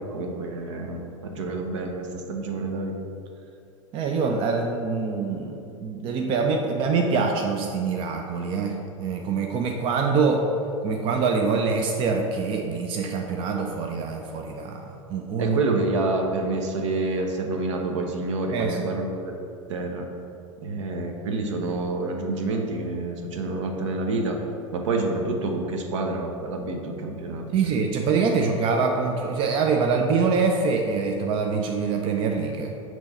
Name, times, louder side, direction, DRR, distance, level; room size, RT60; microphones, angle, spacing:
voice 1, 0.0-2.9 15.4-20.0 20.6-24.4 24.7-27.7, right 3 dB, 60° right, 3 dB, 0.8 m, -28 dB
voice 2, 3.9-10.4 10.8-15.6 18.5-18.8 27.5-32.7, right 4 dB, 30° right, 3 dB, 0.4 m, -25 dB
6.1 x 3.1 x 5.3 m, 2.6 s
figure-of-eight pair, 90°, 18 cm